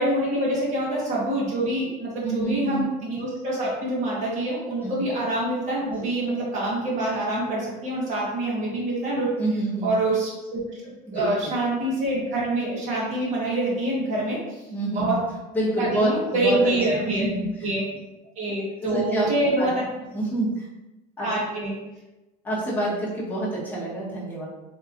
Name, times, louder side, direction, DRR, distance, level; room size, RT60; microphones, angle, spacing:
voice 1, 0.0-9.3 9.8-14.6 14.9-15.2 15.8-17.8 18.4-19.7 21.2-21.7, right 1 dB, 35° right, -5 dB, 1.2 m, -26 dB
voice 2, 2.2-2.8 4.8-5.0 9.4-9.9 11.1-11.5 14.7-15.2 15.5-17.7 18.5-18.6 18.8-19.3 19.6-19.7 20.1-20.7 21.2-21.3 22.4-24.5, right 1 dB, 10° left, -8 dB, 1.0 m, -27 dB
3.8 x 3.1 x 2.4 m, 1.0 s
cardioid pair, 160°, 20 cm